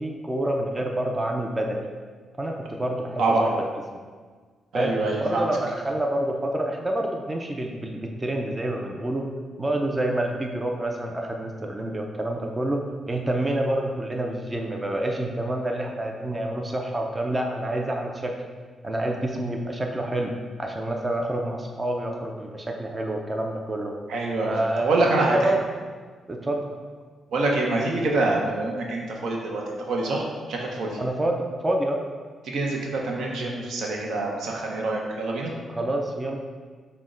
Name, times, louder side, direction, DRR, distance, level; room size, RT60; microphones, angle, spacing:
voice 1, 0.0-1.9 2.4-3.5 4.7-4.9 5.2-9.3 9.6-12.8 13.1-18.3 18.8-20.3 20.6-23.9 24.4-25.6 26.3-26.7 31.0-32.0 35.7-36.4, right 1 dB, 25° right, 1 dB, 0.5 m, -27 dB
voice 2, 4.7-5.4 24.1-24.5 24.8-25.4 27.3-30.9 32.4-35.5, right 2 dB, 80° right, -1 dB, 0.7 m, -25 dB
5.9 x 2.2 x 3.7 m, 1.6 s
cardioid pair, 80°, 0 cm